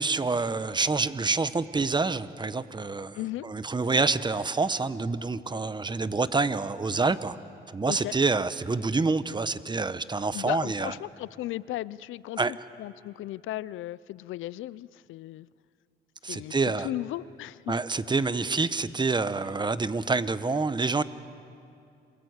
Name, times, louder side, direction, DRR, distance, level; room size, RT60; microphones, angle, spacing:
voice 1, 0.0-7.4 7.7-10.9 12.4-12.5 16.2-16.9 17.7-21.0, right 3 dB, 20° right, 14 dB, 1.0 m, -27 dB
voice 2, 3.1-3.5 7.9-8.1 10.3-15.5 16.3-17.7, left 15 dB, 80° left, 20 dB, 0.5 m, -36 dB
27.5 x 22.0 x 8.1 m, 2.6 s
cardioid pair, 90°, 20 cm